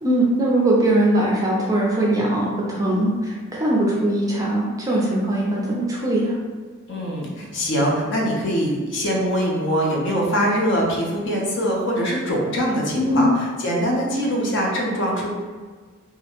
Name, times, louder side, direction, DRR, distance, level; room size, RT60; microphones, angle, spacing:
voice 1, 0.0-6.4 12.9-13.3, right 1 dB, 15° right, -4 dB, 0.3 m, -21 dB
voice 2, 6.9-15.3, equal, 55° left, -3 dB, 0.5 m, -23 dB
2.4 x 2.1 x 2.9 m, 1.5 s
head